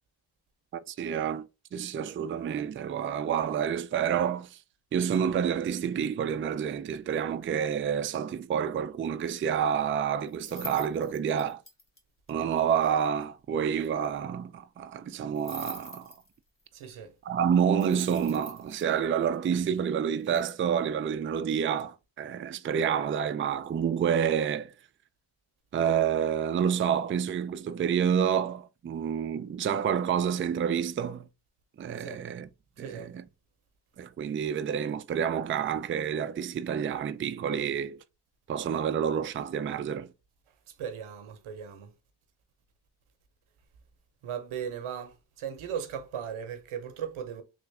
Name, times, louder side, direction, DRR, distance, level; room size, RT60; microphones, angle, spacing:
voice 1, 0.7-4.6 4.9-11.6 12.3-16.1 17.2-24.7 25.7-31.3 31.8-32.5 32.8-33.2 34.0-38.0 38.5-40.1, right 8 dB, 30° right, 0.3 m, -28 dB
sound 1, 10.3-12.0 12.3-12.4 12.6-12.7 12.9-13.0 13.2-13.3 15.4-16.6 17.8-18.8 20.2-20.5, left 1 dB, 25° left, 1.4 m, -45 dB
voice 2, 16.7-17.1 32.0-32.2 32.8-33.1 40.7-41.9 44.2-47.4, right 8 dB, 85° right, 0.8 m, -37 dB
3.4 x 2.5 x 3.3 m
cardioid pair, 50°, 48 cm